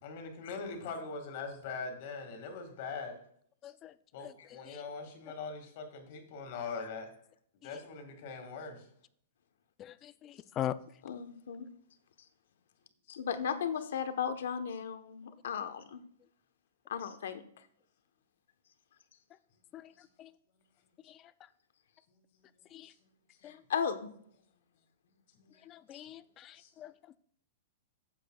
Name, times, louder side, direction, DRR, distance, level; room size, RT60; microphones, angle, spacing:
voice 1, 0.0-3.2 3.6-3.7 4.1-7.1 7.6-8.9 20.0-20.1 22.1-22.9 23.4-23.6 25.3-25.6 26.6-26.7, left 4 dB, 45° left, 5 dB, 2.0 m, -42 dB
voice 2, 9.8-10.8 19.7-19.8 20.2-20.3 22.7-22.9 23.4-23.5 25.7-26.9, left 11 dB, 20° left, 15 dB, 0.3 m, -40 dB
voice 3, 11.0-11.7 13.1-16.0 16.9-17.4 23.4-24.1 25.9-26.0, left 7 dB, 75° left, 9 dB, 1.0 m, -36 dB
15.5 x 7.4 x 2.3 m, 0.65 s
supercardioid pair, 170°, 0 cm